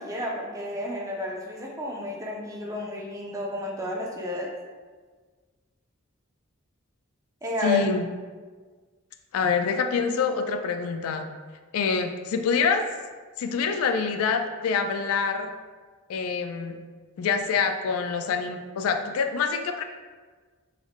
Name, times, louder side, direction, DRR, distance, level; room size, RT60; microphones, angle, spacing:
voice 1, 0.0-4.5 7.4-7.8, left 1 dB, 15° right, -1 dB, 0.4 m, -31 dB
voice 2, 7.6-8.0 9.3-11.3 11.7-12.8 13.4-15.5 16.1-16.8 17.2-19.8, left 5 dB, 85° left, 8 dB, 0.3 m, -26 dB
3.5 x 2.0 x 3.5 m, 1.5 s
head